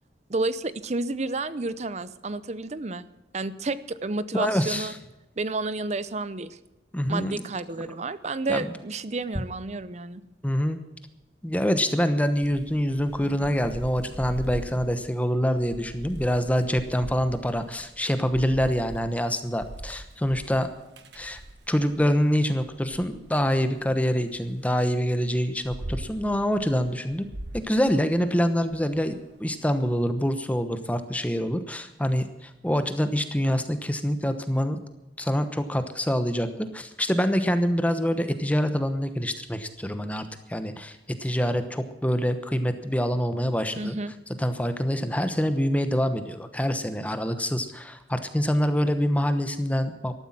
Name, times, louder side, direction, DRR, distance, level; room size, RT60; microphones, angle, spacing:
voice 1, 0.3-3.1 3.3-4.9 5.4-6.6 7.1-10.2 43.8-44.2, right 3 dB, 40° right, 15 dB, 0.7 m, -30 dB
voice 2, 4.3-4.9 6.9-7.4 8.5-8.7 10.4-10.8 11.4-20.7 21.1-21.4 21.7-27.3 27.5-34.8 35.2-44.0 44.4-50.1, equal, 10° left, 9 dB, 1.0 m, -25 dB
Thunder / Rain, 12.4-22.1 22.6-24.5 25.1-29.9, right 1 dB, 75° right, 1.2 m, -42 dB
13.5 x 12.0 x 7.5 m, 0.96 s
head